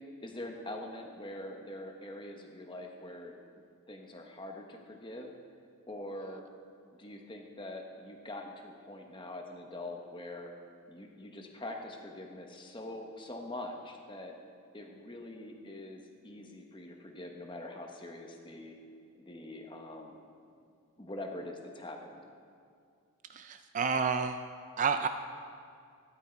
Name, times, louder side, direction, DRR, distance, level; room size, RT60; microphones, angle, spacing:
voice 1, 0.2-3.3 3.9-5.3 5.9-6.4 7.0-10.5 10.9-14.4 14.7-18.8 19.1-20.2 21.0-22.2, left 1 dB, 20° left, 2 dB, 1.1 m, -44 dB
voice 2, 23.3-24.4 24.8-25.1, right 5 dB, 35° right, 8 dB, 0.3 m, -30 dB
13.5 x 11.0 x 4.5 m, 2.3 s
head